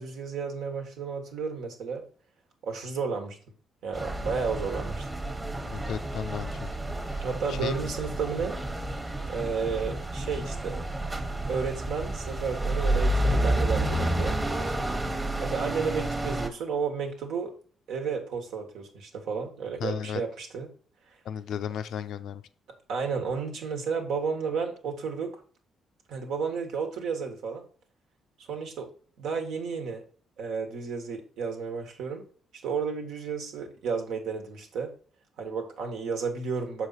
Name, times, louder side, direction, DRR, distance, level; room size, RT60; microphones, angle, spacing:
voice 1, 0.0-2.0 2.6-3.4 3.8-5.1 7.2-8.6 9.3-10.8 11.5-14.3 14.6-14.8 15.4-17.5 17.9-20.7 22.9-25.4 26.1-27.6 28.5-28.9 29.2-30.0 30.4-32.2 32.6-34.9 35.4-36.9, right 5 dB, 80° right, 4 dB, 1.4 m, -32 dB
sound 1, 3.9-16.5, right 1 dB, 15° right, 1.0 m, -30 dB
voice 2, 5.7-7.9 19.8-20.2 21.2-22.4, left 8 dB, 75° left, 12 dB, 0.5 m, -35 dB
6.3 x 4.9 x 4.0 m, 0.42 s
cardioid pair, 90°, 0 cm